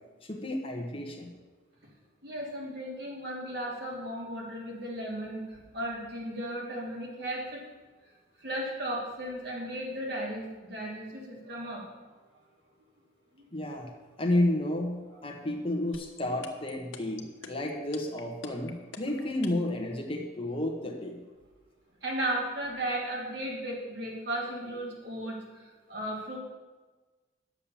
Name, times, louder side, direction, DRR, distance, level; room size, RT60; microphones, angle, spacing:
voice 1, 0.2-1.3 13.5-13.9 14.2-21.2, left 1 dB, 30° left, 2 dB, 1.3 m, -31 dB
voice 2, 2.2-7.6 8.4-11.8 15.1-15.2 22.0-26.4, right 1 dB, 55° right, -3 dB, 3.1 m, -35 dB
sound 1, 15.9-19.7, left 6 dB, 70° left, 1.2 m, -44 dB
10.5 x 7.4 x 7.0 m, 1.3 s
head